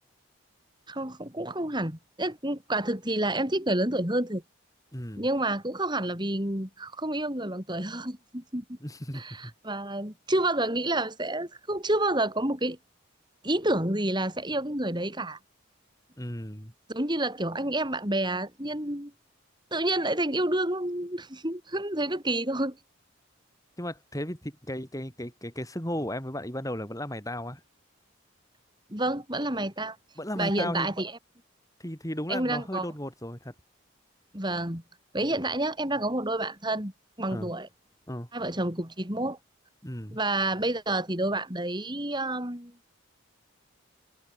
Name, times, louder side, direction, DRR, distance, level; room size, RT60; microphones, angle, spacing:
voice 1, 0.9-4.4 5.2-8.6 9.1-12.8 13.4-15.4 16.9-19.1 19.7-22.8 28.9-30.0 30.4-31.1 32.3-32.9 34.3-34.8 35.1-36.9 37.2-37.7 38.3-39.4 40.1-42.7, right 1 dB, 20° right, 5.7 m, -29 dB
voice 2, 4.9-5.3 8.8-9.5 16.2-16.7 23.8-27.6 30.2-30.9 31.8-33.5 37.3-37.5 38.1-38.3 39.8-40.2, left 1 dB, 15° left, 7.9 m, -35 dB
head